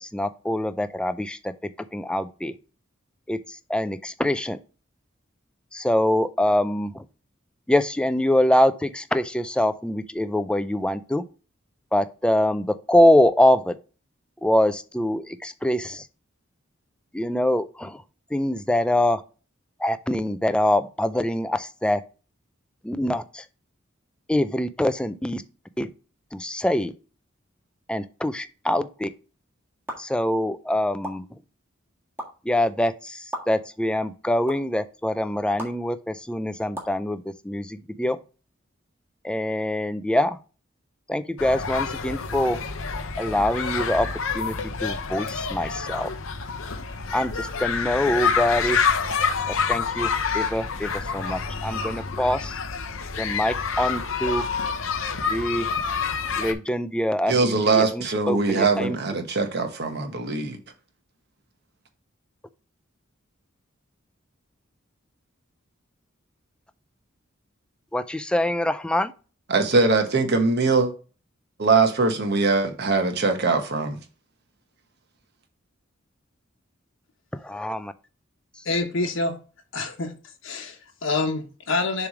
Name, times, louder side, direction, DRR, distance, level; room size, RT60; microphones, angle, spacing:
voice 1, 0.0-1.5 1.9-2.5 3.3-3.4 3.7-4.6 5.7-7.0 7.7-11.2 11.9-13.8 14.4-16.0 17.1-18.0 18.3-19.2 19.8-22.0 22.8-23.4 24.3-25.4 25.8-25.9 26.3-26.9 27.9-29.1 30.0-31.2 32.5-38.2 39.2-40.4 41.1-42.6 43.2-44.1 44.3-44.5 44.8-46.1 47.1-48.8 49.5-52.6 53.2-54.5 55.3-55.7 56.4-59.0 67.9-69.1 77.4-77.9, left 1 dB, 5° left, 0.4 m, -24 dB
sound 1, 29.9-30.0 31.0-31.1 32.2-32.3 33.3-33.4 34.5-34.6 35.6-35.7 36.7-36.9, equal, 10° right, 1.6 m, -32 dB
sound 2, 41.4-56.5, left 5 dB, 90° left, 0.8 m, -27 dB
voice 2, 57.3-60.6 69.5-70.9 71.6-74.0, right 3 dB, 55° right, 1.2 m, -22 dB
voice 3, 78.6-79.4 79.7-82.1, left 3 dB, 75° left, 1.2 m, -27 dB
7.0 x 3.2 x 4.9 m
head